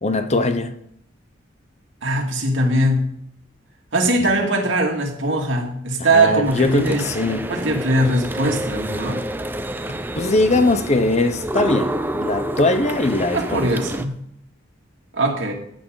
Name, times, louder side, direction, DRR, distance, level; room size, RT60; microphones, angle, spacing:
voice 1, 0.0-0.8 6.0-7.5 10.1-13.7, left 2 dB, 35° left, 0.7 m, -20 dB
voice 2, 2.0-3.1 3.9-7.0 7.5-9.2 13.3-14.1 15.1-15.5, right 1 dB, 70° right, 2.3 m, -20 dB
sound 1, 6.5-14.1, right 1 dB, 10° right, 0.5 m, -28 dB
14.5 x 8.9 x 3.9 m
head